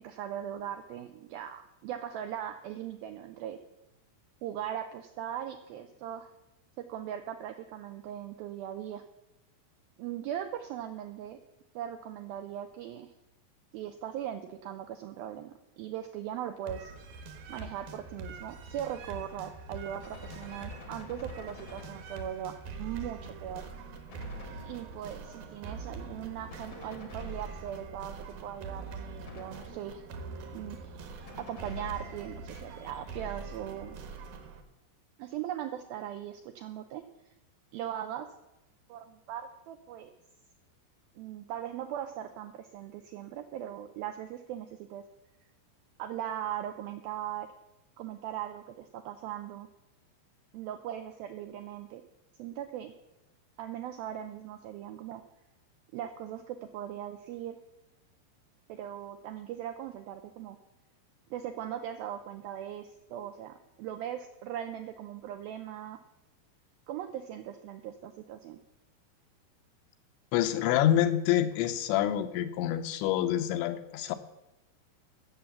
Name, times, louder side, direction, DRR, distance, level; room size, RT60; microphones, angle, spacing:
voice 1, 0.0-3.6 4.4-6.3 6.8-9.0 10.0-11.4 11.8-13.1 13.7-16.9 17.5-23.6 24.6-28.2 28.4-30.0 30.5-34.0 35.2-37.0 37.7-38.3 38.9-40.1 41.2-45.0 46.0-47.5 48.0-49.7 50.5-52.0 52.4-52.9 53.6-55.2 55.9-57.6 58.7-60.6 61.3-66.0 66.9-68.6, right 10 dB, 85° right, 7 dB, 2.1 m, -39 dB
sound 1, 16.7-34.6, right 4 dB, 65° right, 2.8 m, -44 dB
Gunshot gunfire, 20.0-22.5 24.1-25.1 26.5-27.9 29.2-30.1 31.3-32.4, left 4 dB, 65° left, 1.2 m, -50 dB
voice 2, 70.3-74.2, left 11 dB, 90° left, 9 dB, 3.2 m, -27 dB
16.0 x 7.1 x 7.1 m, 0.93 s
omnidirectional pair, 5.1 m